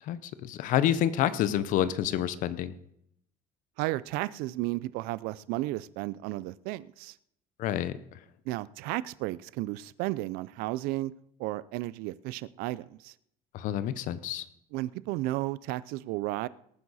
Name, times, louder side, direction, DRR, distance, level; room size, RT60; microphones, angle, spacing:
voice 1, 0.1-2.7 7.6-7.9 13.5-14.4, left 11 dB, 60° left, 15 dB, 0.8 m, -28 dB
voice 2, 3.8-7.1 8.5-11.1 11.4-13.1 14.7-16.5, right 18 dB, 80° right, 18 dB, 0.4 m, -33 dB
19.0 x 9.4 x 4.1 m, 0.75 s
cardioid pair, 145°, 15 cm